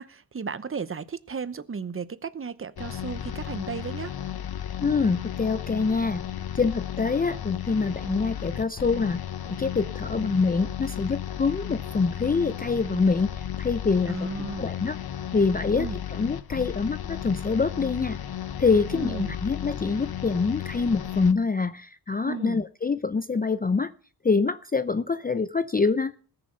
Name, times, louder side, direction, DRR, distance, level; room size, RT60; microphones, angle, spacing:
voice 1, 0.0-4.1 14.1-14.7 15.7-16.0 18.9-19.4 22.2-22.7, right 5 dB, 35° right, 0.9 m, -34 dB
sound 1, 2.8-21.3, left 10 dB, 70° left, 1.0 m, -34 dB
voice 2, 4.8-6.2 6.6-9.2 9.5-13.3 13.6-14.3 14.6-15.0 15.3-18.2 18.6-23.9 24.2-26.1, left 4 dB, 25° left, 0.5 m, -25 dB
20.0 x 6.9 x 5.5 m
wide cardioid pair, 105°, 39 cm